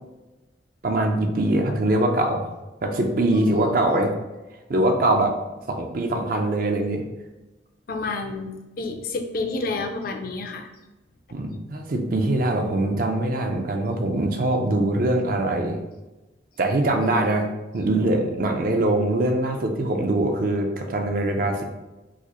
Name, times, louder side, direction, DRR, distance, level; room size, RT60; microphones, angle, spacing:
voice 1, 0.8-2.5 2.8-4.1 4.7-5.4 5.7-7.0 11.3-15.8 16.6-17.5 17.7-21.6, right 1 dB, 50° right, 4 dB, 0.5 m, -23 dB
voice 2, 3.3-3.8 7.9-8.5 8.8-10.7 17.0-17.4, left 3 dB, 50° left, 3 dB, 0.4 m, -30 dB
4.8 x 2.0 x 2.9 m, 1.1 s
head